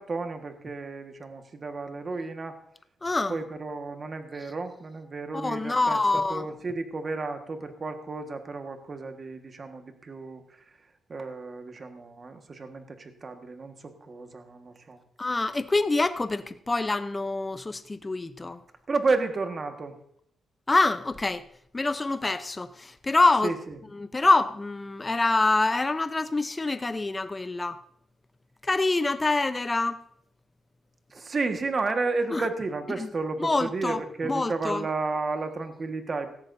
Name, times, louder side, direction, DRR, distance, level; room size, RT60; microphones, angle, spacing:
voice 1, 0.0-2.6 3.3-10.4 11.1-15.0 18.9-19.9 23.4-23.7 31.1-36.3, right 3 dB, 40° right, 1.5 m, -32 dB
voice 2, 3.0-3.4 5.3-6.4 15.2-18.6 20.7-21.4 21.7-23.5 23.9-27.8 28.6-30.0 32.3-32.5 33.0-33.1 33.4-34.9, left 3 dB, 20° left, 0.7 m, -26 dB
17.5 x 14.0 x 2.7 m
cardioid pair, 100°, 0 cm